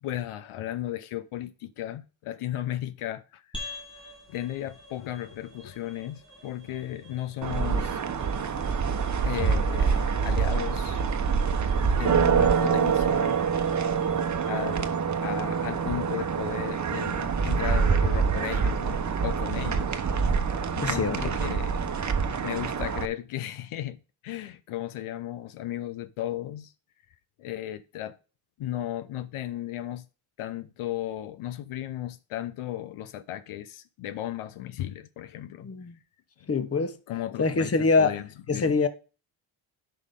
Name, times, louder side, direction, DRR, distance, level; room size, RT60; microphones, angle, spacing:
voice 1, 0.0-3.5 4.3-8.0 8.4-8.5 9.2-11.0 12.0-13.4 14.5-20.0 20.7-21.8 22.4-24.0 24.2-26.7 27.4-28.2 28.6-30.0 30.4-35.7 36.4-36.5 37.1-37.7 38.0-38.7, left 13 dB, 75° left, 0.8 m, -35 dB
sound 1, 3.5-18.1, left 2 dB, 10° left, 3.4 m, -49 dB
sound 2, 7.4-23.1, right 6 dB, 35° right, 1.0 m, -26 dB
voice 2, 20.8-21.3 35.6-36.0 36.5-37.0 37.4-38.2 38.5-38.9, left 4 dB, 30° left, 1.1 m, -24 dB
10.5 x 5.7 x 3.7 m
cardioid pair, 90°, 50 cm